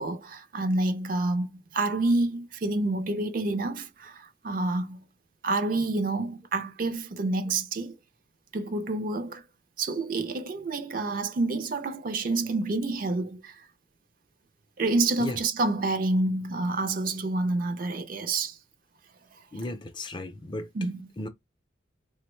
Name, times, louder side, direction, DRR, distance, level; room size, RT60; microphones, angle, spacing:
voice 1, 0.0-5.0 5.4-8.0 8.5-9.4 9.8-13.6 14.8-18.6 20.7-21.0, right 2 dB, 45° right, 0.4 m, -28 dB
voice 2, 19.5-20.7 21.2-21.3, left 2 dB, 25° left, 0.4 m, -35 dB
3.7 x 2.1 x 3.0 m
head